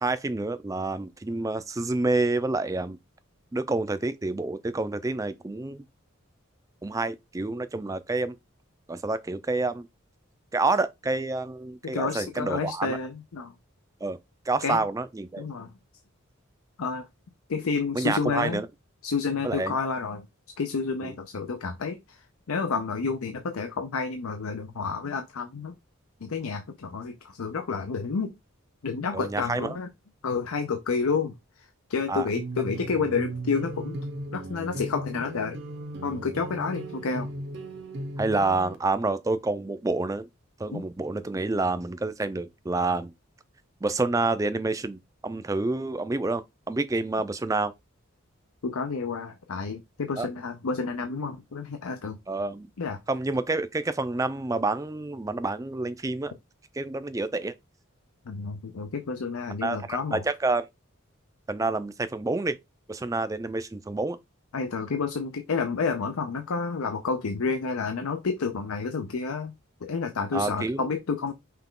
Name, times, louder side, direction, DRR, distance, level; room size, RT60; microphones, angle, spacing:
voice 1, 0.0-3.0 3.5-5.9 6.8-8.4 8.9-9.9 10.5-13.0 14.0-14.2 14.5-15.4 17.9-18.7 19.4-19.8 21.0-21.1 29.1-29.8 32.1-32.3 38.2-40.3 40.6-43.1 43.8-47.7 50.2-50.3 52.3-52.7 53.1-56.3 56.7-57.5 59.6-60.6 61.5-62.6 62.9-64.2 70.3-70.9, right 3 dB, 15° right, 0.3 m, -28 dB
voice 2, 11.8-13.5 14.6-14.8 15.4-15.7 16.8-17.1 17.5-18.6 19.0-20.3 20.6-25.8 26.2-28.3 28.8-29.9 30.2-34.0 34.3-35.6 36.0-37.3 40.7-40.8 48.6-52.2 52.8-53.0 58.3-60.2 64.5-69.5 69.8-71.3, left 5 dB, 85° left, 0.6 m, -30 dB
sound 1, 32.3-38.7, right 2 dB, 50° right, 0.7 m, -36 dB
5.7 x 2.3 x 3.7 m
head